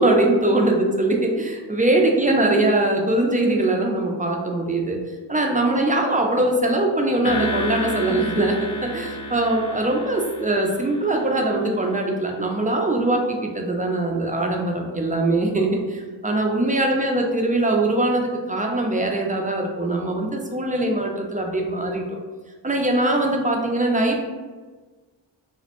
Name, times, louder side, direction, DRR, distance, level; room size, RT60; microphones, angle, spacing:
voice 1, 0.0-5.0 5.3-8.6 8.8-22.0 22.6-24.2, right 2 dB, 20° right, 1 dB, 0.4 m, -22 dB
sound 1, 7.2-11.7, left 1 dB, 45° left, 0.4 m, -31 dB
2.4 x 2.0 x 2.9 m, 1.4 s
cardioid pair, 40°, 45 cm